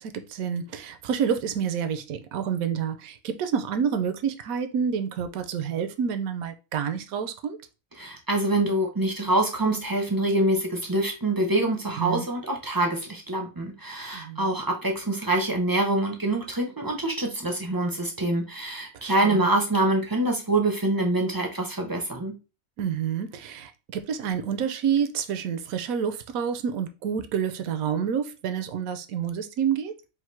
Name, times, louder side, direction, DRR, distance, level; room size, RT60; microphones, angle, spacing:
voice 1, 0.0-7.6 12.0-12.3 14.1-14.5 19.0-19.5 22.8-29.9, right 7 dB, 80° right, 1.1 m, -28 dB
voice 2, 8.0-22.3, right 1 dB, 30° right, 0.3 m, -25 dB
3.6 x 2.6 x 4.4 m
omnidirectional pair, 1.4 m